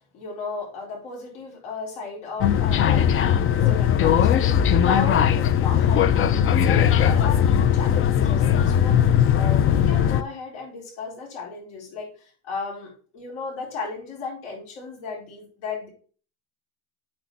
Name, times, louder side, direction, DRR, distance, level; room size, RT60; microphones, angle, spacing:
voice 1, 0.1-4.4 4.8-6.3 6.5-9.0 9.3-12.1 12.4-15.9, left 4 dB, 85° left, -3 dB, 4.3 m, -34 dB
sound 1, 2.4-10.2, left 9 dB, 35° left, 0.6 m, -19 dB
8.7 x 4.3 x 4.1 m, 0.41 s
supercardioid pair, 105°, 36 cm